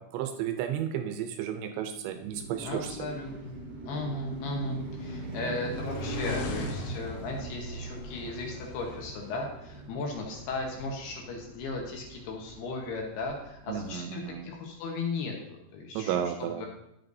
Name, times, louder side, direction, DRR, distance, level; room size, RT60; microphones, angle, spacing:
voice 1, 0.0-3.1 13.7-14.5 15.9-16.7, right 9 dB, 80° right, 7 dB, 2.7 m, -33 dB
Car passing by, 2.1-14.3, right 1 dB, 50° right, 1.2 m, -40 dB
voice 2, 2.6-3.5 3.9-16.7, left 3 dB, 70° left, 0 dB, 2.8 m, -36 dB
sound 1, 4.7-9.5, left 4 dB, 90° left, 3.5 m, -43 dB
11.0 x 8.3 x 2.6 m, 0.81 s
omnidirectional pair, 5.3 m